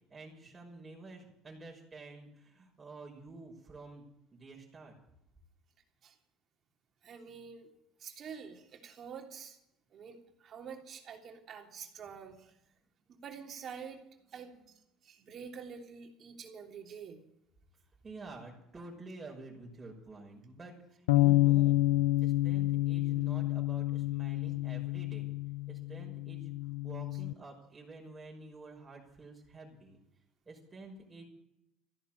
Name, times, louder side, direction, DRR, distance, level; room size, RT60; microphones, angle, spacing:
voice 1, 0.1-4.0 4.3-4.9 18.0-21.8 22.2-25.3 25.7-26.5 26.8-30.0 30.5-31.3, right 3 dB, 20° right, -2 dB, 5.9 m, -49 dB
voice 2, 7.0-7.7 8.0-9.6 9.9-12.5 13.2-14.0 14.3-14.5 15.0-17.2, right 6 dB, 50° right, 3 dB, 3.1 m, -47 dB
sound 1, 21.1-27.3, left 18 dB, 85° left, 0.5 m, -29 dB
14.5 x 11.0 x 9.0 m, 0.82 s
hypercardioid pair, 75°, 0 cm